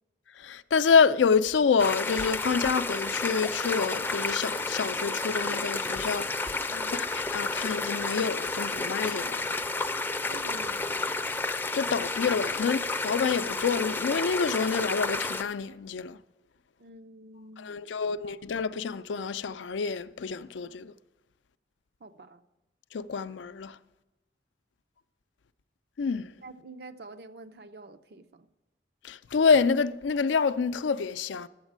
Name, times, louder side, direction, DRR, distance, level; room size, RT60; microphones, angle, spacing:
voice 1, 0.4-6.7 6.9-9.6 11.7-16.2 17.6-20.9 22.9-23.8 26.0-26.3 29.0-31.5, left 5 dB, 90° left, 0.4 m, -27 dB
sound 1, 1.8-15.4, left 3 dB, 10° left, 0.4 m, -31 dB
voice 2, 6.7-7.0 10.0-11.0 16.8-18.4 22.0-22.4 26.4-28.5, right 2 dB, 60° right, 0.6 m, -48 dB
12.0 x 8.0 x 7.4 m
head